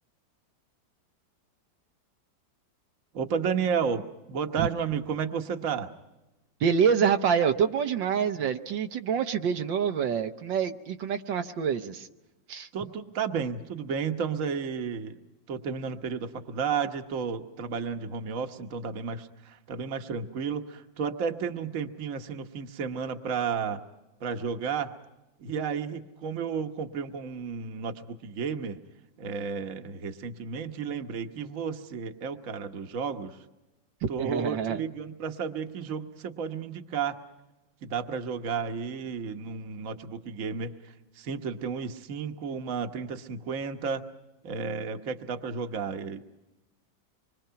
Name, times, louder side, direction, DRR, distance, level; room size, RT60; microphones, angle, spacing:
voice 1, 3.1-5.9 12.7-15.2 15.5-23.8 24.2-24.9 25.4-28.8 29.2-33.4 34.1-37.2 37.8-44.0 44.4-46.2, right 6 dB, 50° right, 6 dB, 1.4 m, -32 dB
voice 2, 6.6-12.1 12.5-12.7 34.2-34.8, right 7 dB, 75° right, 6 dB, 1.7 m, -26 dB
25.5 x 24.0 x 5.8 m, 1.0 s
omnidirectional pair, 2.0 m